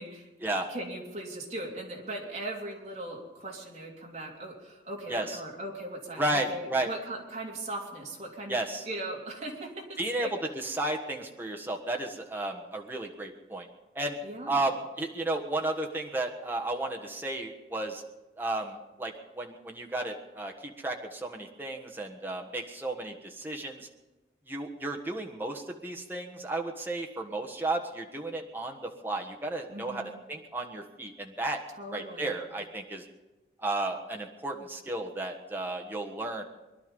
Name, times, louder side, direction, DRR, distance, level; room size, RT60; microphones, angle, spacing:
voice 1, 0.7-8.6 8.8-10.3 14.2-14.6 29.7-30.1 31.7-32.3, right 1 dB, 40° right, -2 dB, 3.1 m, -39 dB
voice 2, 5.1-5.4 6.1-6.9 8.5-8.9 10.0-10.3 10.5-13.7 13.9-14.2 14.5-18.0 18.4-23.9 24.5-31.6 31.9-33.1 33.6-36.4, right 2 dB, 10° right, 1 dB, 1.5 m, -33 dB
22.5 x 11.5 x 5.4 m, 1.1 s
head